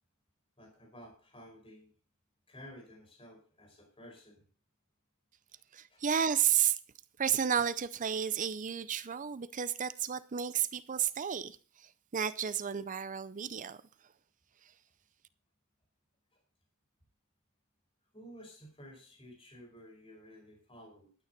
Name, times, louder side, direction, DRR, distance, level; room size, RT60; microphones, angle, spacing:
voice 1, 0.6-1.9 2.5-4.4 5.5-5.6 5.9-6.0 16.3-16.4 18.1-21.1, equal, 25° left, 4.7 m, -53 dB
voice 2, 5.7-6.8 7.2-13.8, right 8 dB, 35° right, 0.5 m, -32 dB
12.0 x 9.3 x 5.2 m
head